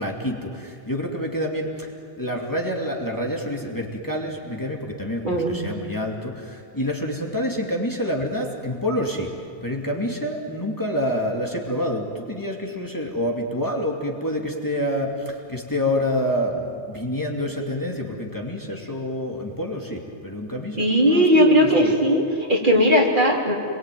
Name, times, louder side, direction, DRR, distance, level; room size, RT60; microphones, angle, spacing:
voice 1, 0.0-1.9 2.2-9.3 9.6-21.9, left 1 dB, 20° left, -1 dB, 2.6 m, -27 dB
voice 2, 5.2-5.6 20.8-23.5, equal, 45° right, -1 dB, 3.7 m, -18 dB
28.5 x 22.0 x 9.3 m, 2.4 s
omnidirectional pair, 1.1 m